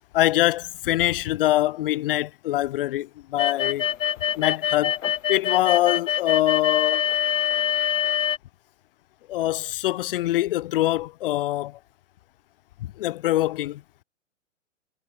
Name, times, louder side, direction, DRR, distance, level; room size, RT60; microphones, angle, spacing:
voice 1, 0.1-3.9 4.4-5.0 5.3-7.1 9.3-11.8 12.8-13.8, left 15 dB, 45° left, 1.8 m, -24 dB
sound 1, 3.4-8.4, left 10 dB, 80° left, 0.5 m, -25 dB
figure-of-eight pair, 115°, 38 cm